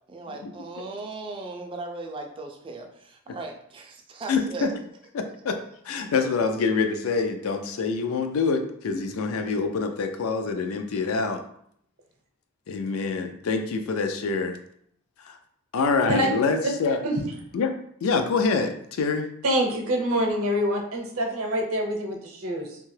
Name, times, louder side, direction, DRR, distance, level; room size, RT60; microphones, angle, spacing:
voice 1, 0.1-4.7, right 3 dB, 25° right, 2 dB, 0.3 m, -37 dB
voice 2, 4.3-4.7 5.1-5.6 5.8-11.4 12.7-14.6 15.2-15.4 15.7-17.0 17.5-17.7 18.0-19.3, left 4 dB, 70° left, 7 dB, 0.4 m, -26 dB
voice 3, 19.4-22.8, equal, 70° right, 1 dB, 0.6 m, -25 dB
2.8 x 2.3 x 3.1 m, 0.69 s
head